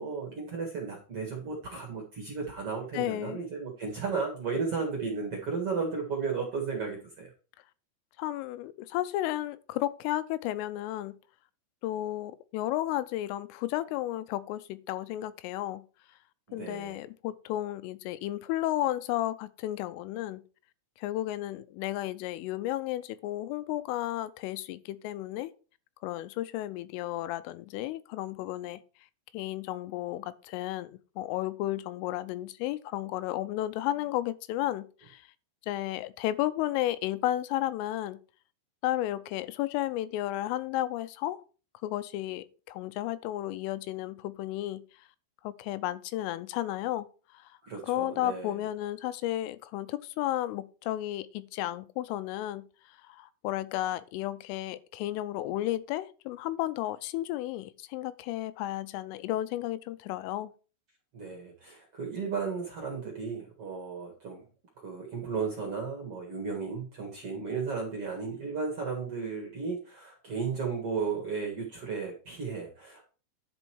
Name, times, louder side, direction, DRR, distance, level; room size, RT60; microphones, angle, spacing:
voice 1, 0.0-7.3 16.5-17.0 47.6-48.6 61.1-64.4 64.8-73.0, right 5 dB, 55° right, 1.6 m, -34 dB
voice 2, 2.9-3.4 8.2-11.1 11.8-15.8 16.5-20.4 21.0-25.5 26.0-28.8 29.3-35.2 35.7-38.2 38.8-41.4 41.8-44.8 45.4-47.1 47.3-47.5 47.8-52.6 53.1-60.5, left 14 dB, 85° left, 3.2 m, -33 dB
10.5 x 5.4 x 4.6 m
omnidirectional pair, 5.7 m